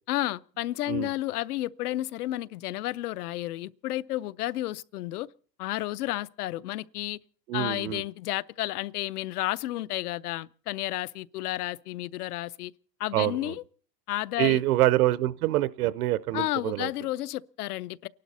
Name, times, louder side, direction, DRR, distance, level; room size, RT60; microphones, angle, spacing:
voice 1, 0.1-5.3 5.6-7.2 7.5-12.7 13.0-13.6 14.1-14.6 16.3-18.1, left 15 dB, 65° left, 0.7 m, -31 dB
voice 2, 7.5-8.0 13.1-13.5 14.4-16.9, right 15 dB, 60° right, 0.7 m, -25 dB
30.0 x 12.0 x 4.1 m
supercardioid pair, 180°, 49 cm